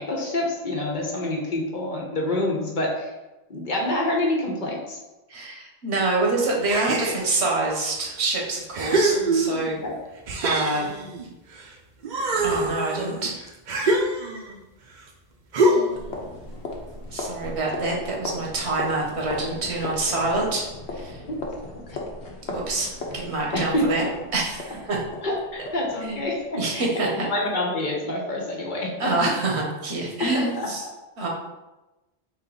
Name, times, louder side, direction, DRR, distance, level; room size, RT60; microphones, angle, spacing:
voice 1, 0.0-3.1 3.5-5.0 9.8-9.9 21.3-21.4 21.9-22.0 23.5-24.1 25.2-29.3 30.2-30.9, left 1 dB, 50° left, -1 dB, 0.9 m, -27 dB
voice 2, 5.3-9.8 10.4-10.9 12.4-13.3 17.1-21.2 22.5-24.0 24.3-25.0 26.0-26.2 26.6-27.3 29.0-30.8 31.2-31.3, right 2 dB, 85° right, -1 dB, 1.2 m, -26 dB
sound 1, 6.7-7.5 8.2-8.3 8.7-9.8 10.3-11.7 12.0-14.6 15.5-16.1, right 2 dB, 55° right, 0.6 m, -24 dB
sound 2, 15.9-26.5, left 2 dB, 85° left, 1.0 m, -36 dB
3.9 x 3.0 x 3.8 m, 1.0 s
omnidirectional pair, 1.1 m